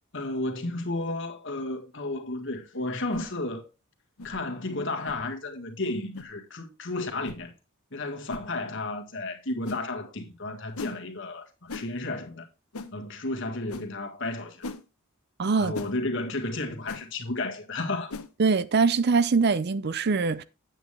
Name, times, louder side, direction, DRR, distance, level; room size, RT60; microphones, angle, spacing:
voice 1, 0.1-3.6 4.2-7.5 7.9-12.4 12.9-14.7 15.6-18.1, left 2 dB, 55° left, 1.7 m, -32 dB
sound 1, 3.1-3.3 4.2-4.4 5.0-5.2 6.1-6.3 7.2-7.4 8.3-8.5 9.6-9.8 10.8-11.0 11.7-11.9 12.7-12.9 13.7-13.9 14.6-14.8 15.7-15.9 16.9-17.0 18.1-18.3, left 3 dB, 90° left, 1.0 m, -38 dB
voice 2, 15.4-15.7 18.4-20.4, right 4 dB, 50° right, 0.5 m, -23 dB
9.1 x 8.3 x 3.2 m
head